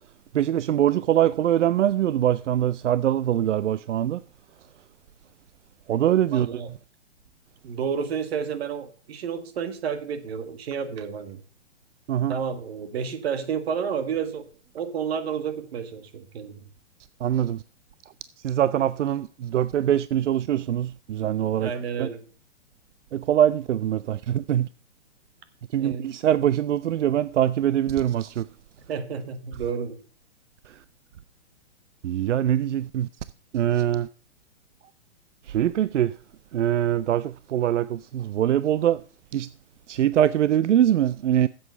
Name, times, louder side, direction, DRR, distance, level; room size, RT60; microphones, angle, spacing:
voice 1, 0.3-4.2 5.9-6.6 12.1-12.4 17.2-17.6 18.4-21.7 22.0-22.1 23.1-24.7 25.7-28.5 32.0-33.1 33.5-34.1 35.5-36.2 36.5-39.0 39.3-39.5 39.9-41.5, right 11 dB, 85° right, 0.5 m, -23 dB
voice 2, 6.3-6.7 7.6-11.4 12.3-14.5 14.7-16.6 21.6-22.2 25.8-26.1 28.9-30.0, right 7 dB, 60° right, 1.8 m, -30 dB
8.1 x 7.9 x 6.8 m
hypercardioid pair, 135°, 35 cm